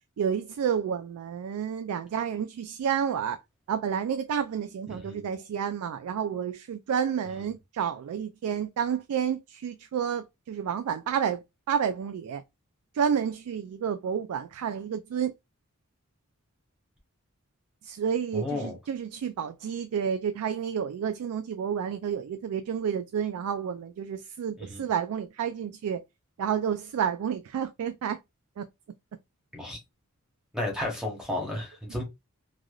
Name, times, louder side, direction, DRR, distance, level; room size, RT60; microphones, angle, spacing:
voice 1, 0.2-3.4 3.7-12.4 12.9-15.3 17.8-26.0 26.4-28.2 28.6-28.7, right 7 dB, 90° right, 0.3 m, -30 dB
voice 2, 4.9-5.3 18.3-18.8 24.6-24.9 29.5-29.8 30.5-32.0, left 1 dB, 5° right, 0.9 m, -33 dB
3.2 x 2.5 x 2.3 m
head